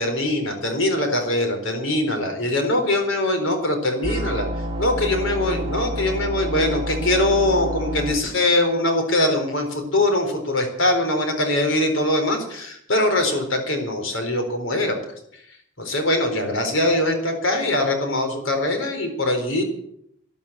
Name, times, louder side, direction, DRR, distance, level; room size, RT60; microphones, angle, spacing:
voice 1, 0.0-4.5 4.8-15.0 15.8-19.6, left 1 dB, 65° left, 5 dB, 4.1 m, -22 dB
sound 1, 4.0-8.1, equal, 25° right, 2.4 m, -28 dB
13.5 x 10.5 x 8.7 m, 0.72 s
head